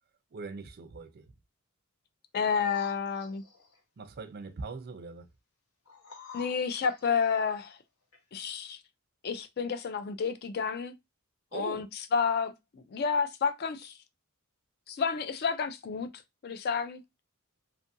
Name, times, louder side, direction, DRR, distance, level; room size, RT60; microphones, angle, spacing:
voice 1, 0.3-1.3 4.0-5.3 11.5-11.8, right 4 dB, 45° right, 0.4 m, -41 dB
voice 2, 2.3-3.4 6.3-7.8 8.3-8.8 9.2-10.9 11.5-11.8 12.1-13.9 14.9-16.1 16.4-17.0, left 6 dB, 45° left, 0.4 m, -30 dB
sound 1, 2.4-3.8 5.8-7.5 8.1-8.2, left 4 dB, 80° left, 0.9 m, -49 dB
2.6 x 2.5 x 2.6 m
head